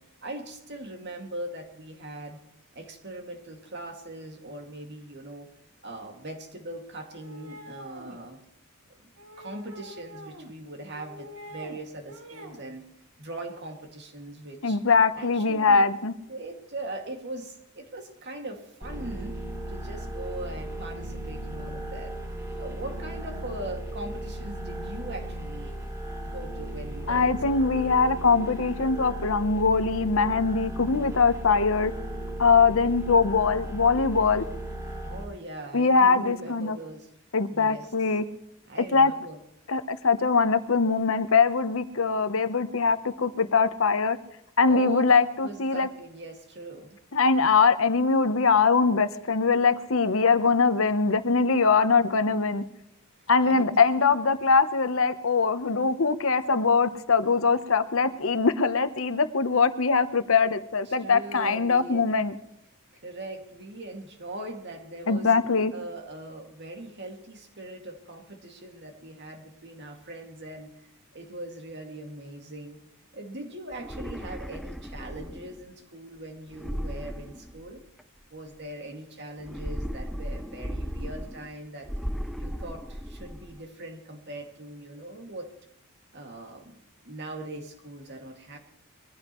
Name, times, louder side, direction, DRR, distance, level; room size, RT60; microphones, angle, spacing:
voice 1, 0.0-2.4 2.7-5.5 5.8-8.4 9.0-9.1 9.4-12.9 13.2-14.8 15.1-15.8 16.3-19.4 19.7-22.1 22.6-25.8 26.2-27.3 27.6-27.7 35.0-37.1 37.5-37.9 38.7-39.4 44.7-45.0 45.4-47.0 53.4-53.8 60.9-62.1 63.0-65.3 65.7-70.8 71.1-72.8 73.1-77.8 78.3-81.9 82.4-85.5 86.1-88.6, right 1 dB, 50° right, 3 dB, 2.3 m, -40 dB
sound 1, 7.1-8.2 9.2-10.5 10.9-11.8 12.1-12.6, right 1 dB, 70° right, 2.6 m, -45 dB
voice 2, 14.6-16.1 27.1-31.9 32.4-34.4 35.7-36.8 37.3-38.2 38.9-39.1 39.7-44.2 44.6-45.9 47.1-52.6 53.3-62.3 65.1-65.7, left 4 dB, 65° left, 11 dB, 0.9 m, -22 dB
sound 2, 18.8-35.2, right 1 dB, 15° right, 3.9 m, -36 dB
sound 3, 73.7-75.6 76.5-78.0 79.4-81.5 81.8-83.6, equal, ahead, 0.5 m, -36 dB
22.0 x 15.0 x 3.1 m, 0.79 s
head